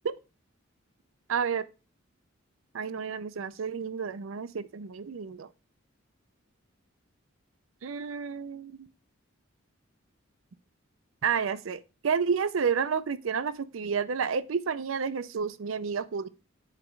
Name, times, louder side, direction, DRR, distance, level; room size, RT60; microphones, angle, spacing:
voice 1, 1.3-1.6 2.7-5.5 7.8-8.9 11.2-16.3, right 6 dB, 75° right, 0.5 m, -30 dB
9.0 x 4.9 x 3.2 m
head